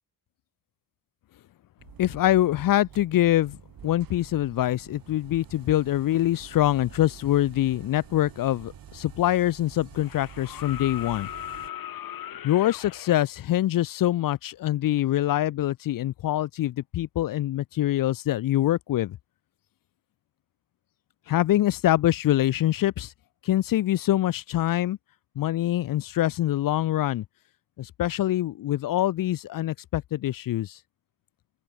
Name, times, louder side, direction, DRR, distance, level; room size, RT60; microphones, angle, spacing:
sound 1, 1.8-11.7, right 10 dB, 85° right, 7.4 m, -48 dB
voice 1, 2.0-3.6 3.8-11.3 12.4-19.2 21.3-23.1 23.4-25.0 25.4-27.2 27.8-30.8, left 13 dB, 70° left, 0.6 m, -24 dB
sound 2, 8.9-9.0 10.0-13.2 15.0-15.1, left 11 dB, 90° left, 2.4 m, -38 dB
open air
cardioid pair, 100°, 34 cm